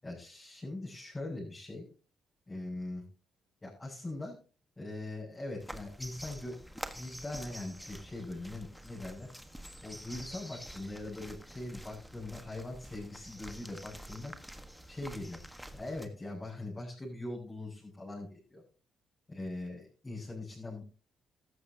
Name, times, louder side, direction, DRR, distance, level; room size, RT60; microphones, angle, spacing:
voice 1, 0.0-1.8 2.5-3.1 3.6-4.3 4.8-6.6 6.9-9.3 9.8-14.3 14.9-15.4 15.7-18.6 19.3-20.8, left 2 dB, 20° left, -5 dB, 7.6 m, -41 dB
sound 1, 5.6-16.1, equal, ahead, 1.4 m, -47 dB
15.0 x 13.0 x 2.9 m, 0.34 s
cardioid pair, 90°, 0 cm